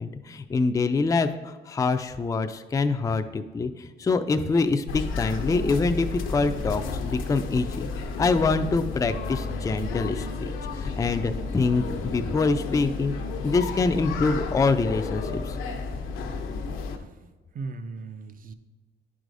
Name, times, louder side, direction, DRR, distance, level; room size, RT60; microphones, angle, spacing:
voice 1, 0.0-7.9 8.2-13.1 13.4-15.6, left 3 dB, 15° left, 8 dB, 0.3 m, -25 dB
sound 1, 4.9-17.0, left 4 dB, 85° left, 0.7 m, -32 dB
voice 2, 17.5-18.5, right 3 dB, 45° right, 10 dB, 0.6 m, -38 dB
10.0 x 4.8 x 2.6 m, 1.3 s
cardioid pair, 90°, 20 cm